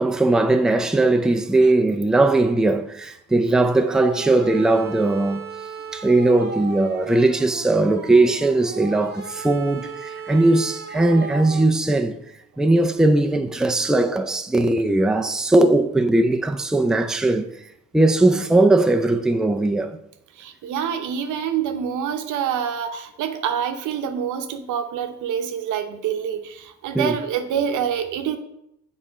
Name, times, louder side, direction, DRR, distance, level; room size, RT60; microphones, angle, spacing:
voice 1, 0.0-5.4 5.9-12.2 12.6-17.4 17.9-20.0 26.9-27.2, right 2 dB, ahead, 0.5 m, -19 dB
sound 1, 3.6-11.7, right 5 dB, 35° right, 1.0 m, -35 dB
voice 2, 20.4-28.4, right 8 dB, 80° right, 0.8 m, -26 dB
7.0 x 4.3 x 5.0 m
cardioid pair, 90°, 30 cm